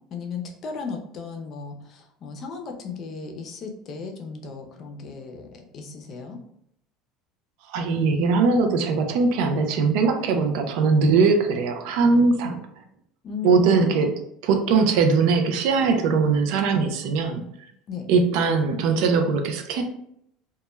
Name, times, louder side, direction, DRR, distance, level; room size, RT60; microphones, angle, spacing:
voice 1, 0.1-5.5 5.7-6.4 13.2-14.0 17.9-18.1, left 4 dB, 50° left, 3 dB, 0.5 m, -35 dB
voice 2, 7.7-12.6 13.4-14.1 14.4-17.4 18.1-19.8, right 4 dB, 70° right, 6 dB, 0.4 m, -21 dB
2.2 x 2.1 x 3.0 m, 0.73 s
supercardioid pair, 95°, 0 cm